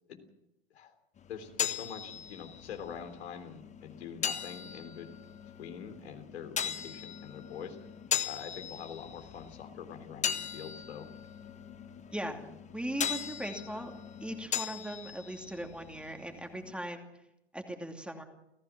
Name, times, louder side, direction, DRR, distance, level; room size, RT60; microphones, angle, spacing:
sound 1, 1.2-16.7, left 8 dB, 20° left, 1.3 m, -39 dB
voice 1, 1.3-5.1 5.6-7.8 8.3-11.1, left 7 dB, 70° left, 6 dB, 3.6 m, -44 dB
voice 2, 12.1-12.4 12.7-13.9 14.2-17.1 17.5-18.2, right 1 dB, 5° right, 3 dB, 2.7 m, -39 dB
29.5 x 15.0 x 6.0 m, 0.88 s
hypercardioid pair, 100°, 34 cm